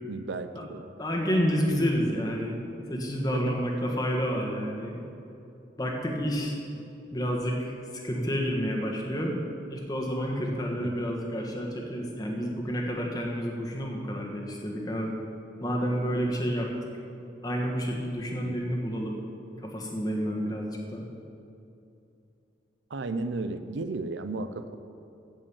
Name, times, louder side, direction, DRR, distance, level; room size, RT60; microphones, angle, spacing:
voice 1, 0.1-0.9 3.3-3.7 10.8-11.1 18.4-18.6 22.9-24.8, right 3 dB, 80° right, 10 dB, 0.6 m, -34 dB
voice 2, 1.0-2.5 2.9-5.0 5.8-6.6 7.1-7.7 8.0-9.3 9.7-15.2 15.6-16.7 17.4-19.2 19.6-21.1, equal, 20° left, 0 dB, 1.5 m, -29 dB
15.5 x 5.4 x 7.1 m, 2.7 s
head